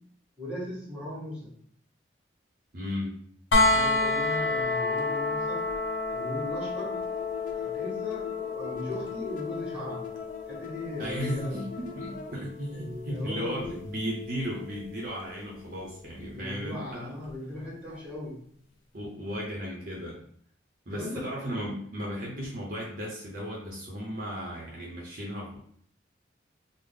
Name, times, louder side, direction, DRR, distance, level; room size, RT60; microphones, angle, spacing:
voice 1, 0.4-1.5 3.6-5.6 6.1-7.1 7.5-10.2 10.5-11.6 12.7-13.7 16.3-18.4 20.9-21.3, left 1 dB, 10° right, -6 dB, 1.5 m, -38 dB
voice 2, 2.7-3.2 11.0-17.1 18.9-20.2 20.9-25.6, equal, 50° right, -3 dB, 0.7 m, -35 dB
sound 1, 3.5-15.3 17.3-17.4, left 2 dB, 75° left, 0.7 m, -31 dB
sound 2, 4.1-12.4, left 4 dB, 45° left, 0.4 m, -43 dB
3.6 x 2.0 x 3.5 m, 0.62 s
head